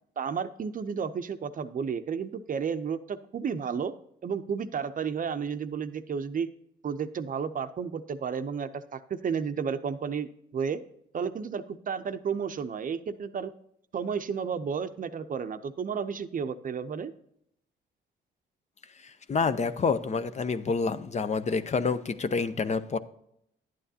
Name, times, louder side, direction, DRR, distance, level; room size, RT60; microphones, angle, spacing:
voice 1, 0.2-3.9 4.2-6.5 6.8-10.3 10.5-10.8 11.1-13.5 13.9-17.1, right 6 dB, 45° right, 10 dB, 0.6 m, -32 dB
voice 2, 19.0-23.0, left 4 dB, 35° left, 12 dB, 0.6 m, -28 dB
11.0 x 9.1 x 2.8 m, 0.73 s
cardioid pair, 90°, 20 cm